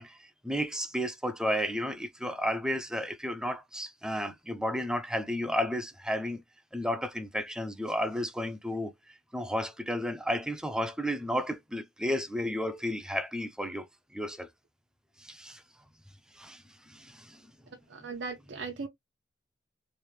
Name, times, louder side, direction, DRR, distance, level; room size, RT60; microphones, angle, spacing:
voice 1, 0.0-6.4 6.7-13.9 14.1-14.5 15.2-15.6 16.3-17.4 18.0-18.1, equal, 5° right, 0.5 m, -33 dB
voice 2, 17.9-18.9, right 4 dB, 80° right, 0.6 m, -38 dB
3.2 x 2.5 x 3.1 m
head